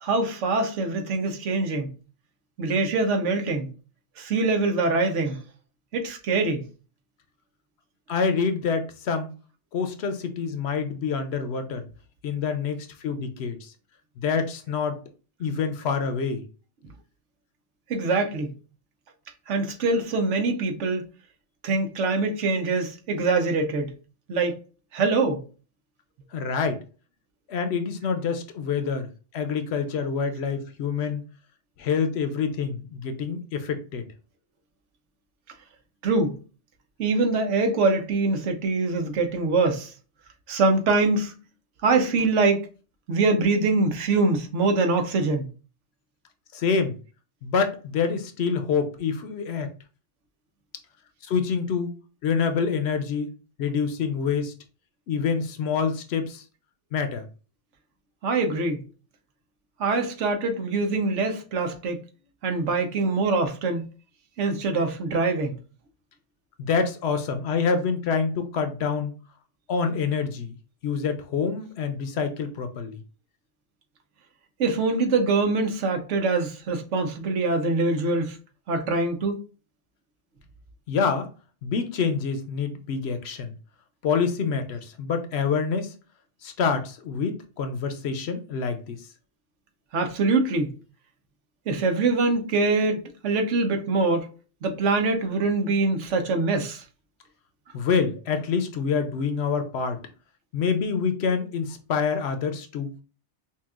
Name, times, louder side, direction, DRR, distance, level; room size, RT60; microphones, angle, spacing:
voice 1, 0.0-1.9 2.6-3.7 4.2-5.4 5.9-6.6 17.9-18.5 19.5-21.0 21.6-23.9 24.3-24.5 24.9-25.4 36.0-36.4 37.0-39.9 40.5-41.3 41.8-42.6 43.1-45.5 58.2-58.8 59.8-62.0 62.4-63.9 64.4-65.6 74.6-78.4 78.7-79.4 89.9-90.8 91.7-94.3 94.6-96.8, right 3 dB, 85° right, 1.1 m, -24 dB
voice 2, 8.1-9.3 9.7-11.9 12.2-13.7 14.2-15.0 15.4-16.4 26.3-26.8 27.5-29.1 29.3-31.2 31.8-34.0 46.5-47.0 47.4-49.7 51.3-51.9 52.2-53.3 53.6-54.5 55.1-56.4 56.9-57.2 66.6-69.1 69.7-70.5 70.8-73.0 80.9-81.3 81.6-83.5 84.0-85.9 86.4-89.0 97.7-100.0 100.5-102.9, left 5 dB, 65° left, 0.8 m, -26 dB
5.5 x 2.4 x 2.4 m
omnidirectional pair, 1.2 m